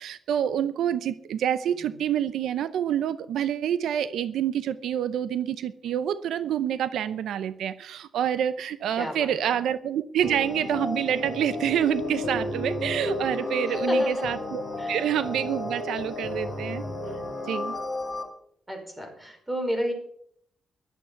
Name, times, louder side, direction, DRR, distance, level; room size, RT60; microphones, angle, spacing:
voice 1, 0.0-14.6 14.9-16.8 17.4-17.7, right 9 dB, 85° right, 14 dB, 0.7 m, -27 dB
voice 2, 9.0-9.6 13.7-14.3 14.8-15.0 18.7-19.9, equal, 10° right, 3 dB, 4.8 m, -32 dB
sound 1, 10.2-18.2, left 2 dB, 15° left, 3.7 m, -31 dB
14.0 x 12.0 x 5.8 m, 0.66 s
cardioid pair, 135°, 0 cm